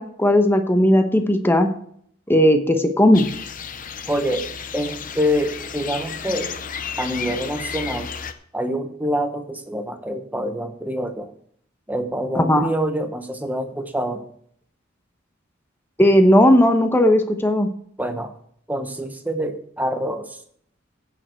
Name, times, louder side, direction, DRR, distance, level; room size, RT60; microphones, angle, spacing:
voice 1, 0.0-1.7 2.3-3.2 12.3-12.7 16.0-17.7, left 1 dB, 10° left, 6 dB, 1.0 m, -16 dB
sound 1, 3.1-8.3, left 7 dB, 40° left, 0.7 m, -32 dB
voice 2, 4.1-4.4 4.7-6.5 7.0-8.1 8.5-11.3 11.9-14.2 18.0-18.3 18.7-20.4, equal, 10° right, 6 dB, 1.0 m, -26 dB
15.5 x 6.8 x 4.5 m, 0.65 s
head